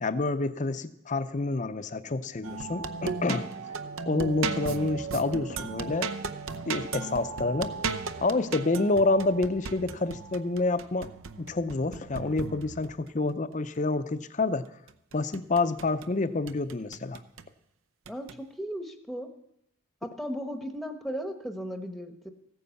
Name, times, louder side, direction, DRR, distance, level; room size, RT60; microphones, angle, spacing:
voice 1, 0.0-3.5 4.1-6.1 6.7-7.8 8.2-11.1 11.4-14.7 15.1-17.2, left 3 dB, 35° left, 13 dB, 0.6 m, -28 dB
sound 1, 2.4-13.1 14.9-16.1 16.5-17.5 18.1-18.4, right 4 dB, 70° right, 0.7 m, -36 dB
voice 2, 18.1-19.3 20.0-22.3, equal, ahead, 6 dB, 0.9 m, -36 dB
15.5 x 9.4 x 7.0 m, 0.81 s
head